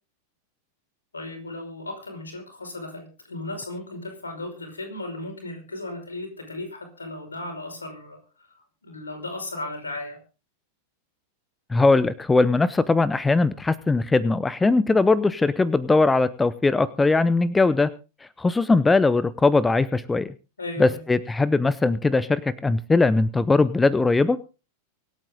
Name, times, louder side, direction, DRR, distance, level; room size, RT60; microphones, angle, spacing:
voice 1, 1.1-8.5 8.8-10.2 20.6-21.0, left 2 dB, 75° left, 4 dB, 5.3 m, -36 dB
voice 2, 11.7-17.9 18.4-20.3 20.8-24.4, left 3 dB, 10° left, 18 dB, 0.7 m, -20 dB
24.5 x 9.0 x 3.8 m, 0.33 s
figure-of-eight pair, 90°, 0 cm